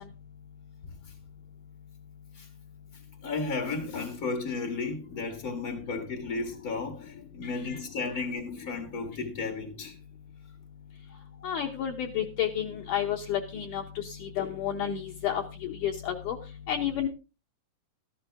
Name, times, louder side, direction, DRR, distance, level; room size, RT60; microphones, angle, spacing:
voice 1, 0.8-1.1 2.3-2.5 2.9-9.9 11.1-11.5, left 4 dB, 50° left, 1.1 m, -34 dB
voice 2, 11.4-16.4 16.7-17.1, left 9 dB, 70° left, 2.1 m, -31 dB
13.5 x 11.5 x 3.5 m
omnidirectional pair, 4.6 m